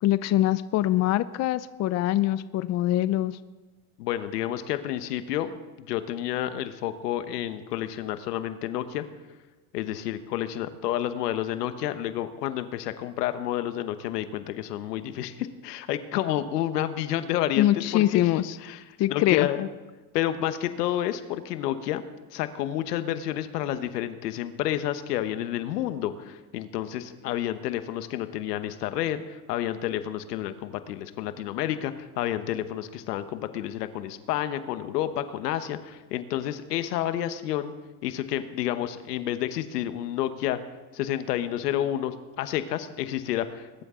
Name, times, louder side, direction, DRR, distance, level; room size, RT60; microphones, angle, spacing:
voice 1, 0.0-3.4 17.6-18.6 19.0-19.5, left 14 dB, 35° left, 15 dB, 0.5 m, -23 dB
voice 2, 4.0-5.5 5.8-9.1 9.7-18.3 18.6-19.7 20.1-22.0 22.3-37.7 38.0-40.6 40.9-43.8, left 12 dB, 90° left, 11 dB, 1.2 m, -30 dB
21.0 x 12.5 x 3.8 m, 1.2 s
supercardioid pair, 110°, 46 cm